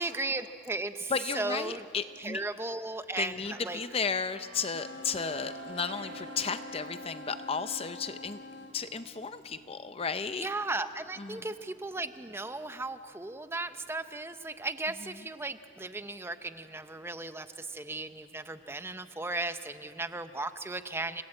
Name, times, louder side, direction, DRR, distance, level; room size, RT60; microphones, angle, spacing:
voice 1, 0.0-1.8 2.2-3.3 3.6-3.8 10.4-21.2, right 2 dB, 10° right, 10 dB, 0.7 m, -36 dB
voice 2, 1.1-2.4 3.2-8.4 8.7-10.5 11.2-11.5 15.0-15.1, left 5 dB, 30° left, 11 dB, 0.5 m, -34 dB
sound 1, 3.4-15.0 15.4-15.7, right 3 dB, 80° right, 2.6 m, -51 dB
sound 2, 4.6-8.8, left 2 dB, 60° left, 1.1 m, -45 dB
29.0 x 18.0 x 8.7 m, 2.3 s
head